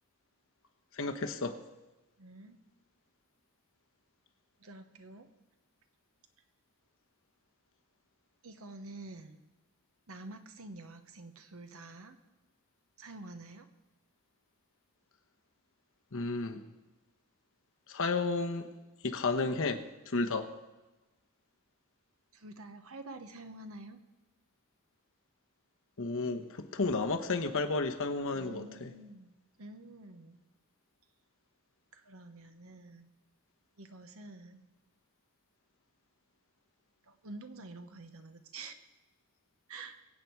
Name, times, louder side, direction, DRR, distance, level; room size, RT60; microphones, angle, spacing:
voice 1, 0.9-1.6 16.1-16.6 17.9-18.7 19.0-19.8 20.1-20.5 26.0-28.9, left 3 dB, 65° left, 6 dB, 1.1 m, -32 dB
voice 2, 2.2-2.6 4.6-5.3 8.4-9.4 10.1-12.2 13.0-13.7 22.3-24.0 28.3-30.4 31.9-33.1 33.8-34.6 37.0-38.7 39.7-40.0, right 2 dB, 70° right, 8 dB, 1.2 m, -48 dB
23.0 x 8.5 x 4.7 m, 1.1 s
head